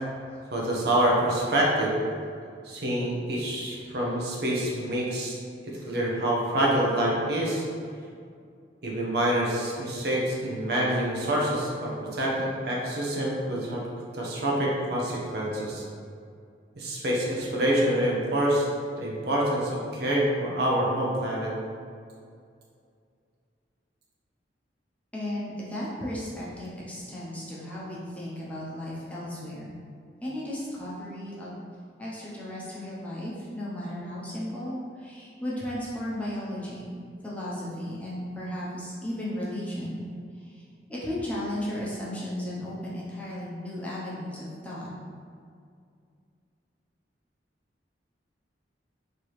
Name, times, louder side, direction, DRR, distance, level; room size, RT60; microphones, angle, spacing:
voice 1, 0.5-1.9 2.6-5.4 5.6-7.6 8.8-13.8 14.1-15.8 16.8-18.6 19.0-21.5, right 1 dB, 60° right, -3 dB, 0.8 m, -26 dB
voice 2, 25.1-29.7 30.2-31.6 32.0-36.9 37.2-40.0 40.3-40.6 40.9-44.9, left 1 dB, 10° left, -7 dB, 0.8 m, -35 dB
4.4 x 2.9 x 3.2 m, 2.3 s
head